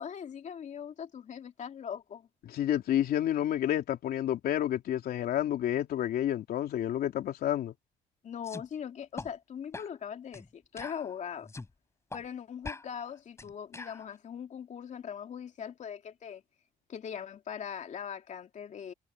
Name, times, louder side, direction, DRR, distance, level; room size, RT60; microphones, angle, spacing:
voice 1, 0.0-2.3 8.2-11.5 12.1-16.4 16.9-18.9, left 8 dB, 45° left, 2.5 m, -41 dB
voice 2, 2.4-7.7, left 11 dB, 65° left, 3.3 m, -29 dB
sound 1, 8.4-8.7 9.2-9.3 9.7-9.9 10.3-10.5 10.8-11.7 12.1-12.2 12.6-14.1, left 3 dB, 15° left, 3.9 m, -43 dB
cardioid pair, 110°, 17 cm